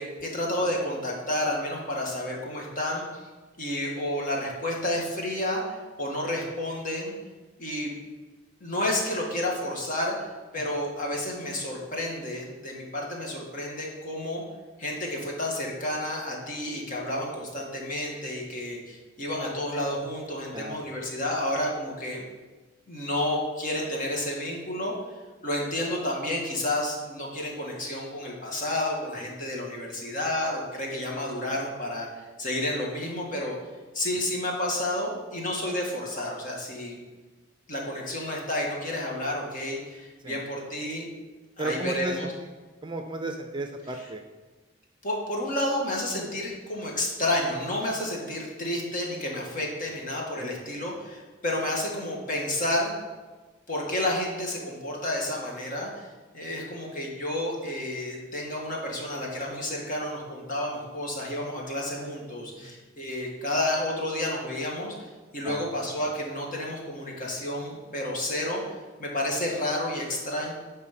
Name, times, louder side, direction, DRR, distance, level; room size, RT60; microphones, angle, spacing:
voice 1, 0.0-3.2 3.6-7.1 7.6-7.9 8.6-10.3 10.5-14.4 14.8-22.3 22.9-24.9 25.4-32.1 32.4-33.6 33.9-37.0 37.7-41.1 41.6-42.3 44.0-44.1 45.0-52.9 53.7-56.1 56.3-65.0 65.3-68.6 69.0-70.5, left 1 dB, 45° left, -1 dB, 1.9 m, -30 dB
voice 2, 20.5-20.8 40.2-40.4 41.6-42.5 42.8-44.2 62.6-62.7 65.4-65.7, right 2 dB, 25° right, 5 dB, 0.6 m, -34 dB
10.5 x 4.4 x 5.9 m, 1.3 s
head